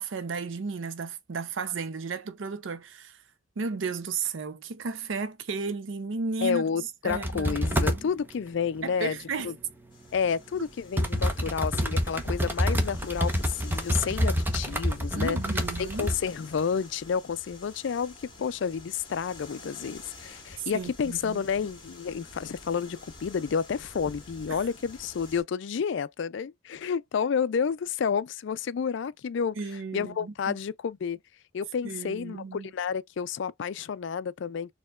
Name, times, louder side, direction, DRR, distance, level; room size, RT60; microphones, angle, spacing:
voice 1, 0.0-3.2 3.6-6.7 7.0-8.1 8.8-9.5 15.1-16.1 20.7-21.4 24.5-24.7 29.6-30.6 31.8-32.7, right 4 dB, 70° right, 0.6 m, -34 dB
voice 2, 6.4-9.2 9.4-9.5 10.1-15.4 15.8-29.6 29.9-31.2 31.5-34.7, left 6 dB, 65° left, 0.4 m, -30 dB
sound 1, 7.1-8.0 10.2-10.3 11.0-16.3 16.6-16.7, equal, 10° right, 0.7 m, -27 dB
sound 2, 9.9-25.4, left 3 dB, 25° left, 1.9 m, -49 dB
4.4 x 2.9 x 2.3 m
head